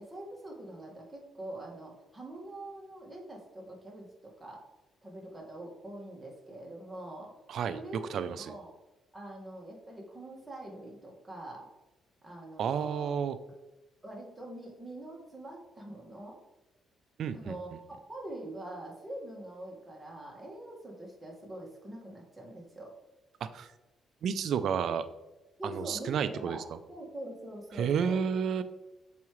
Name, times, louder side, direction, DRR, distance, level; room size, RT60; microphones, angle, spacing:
voice 1, 0.0-4.6 5.0-7.3 7.7-8.7 9.1-11.7 12.2-13.1 14.0-16.4 17.3-22.9 25.6-26.6 26.9-28.2, right 1 dB, 15° right, -2 dB, 1.8 m, -44 dB
voice 2, 7.5-7.8 8.1-8.5 12.6-13.4 17.2-17.8 23.4-23.7 24.2-25.1 25.6-26.6 27.7-28.6, right 7 dB, 65° right, 12 dB, 0.4 m, -31 dB
6.8 x 4.8 x 3.1 m, 1.0 s
cardioid pair, 90°, 0 cm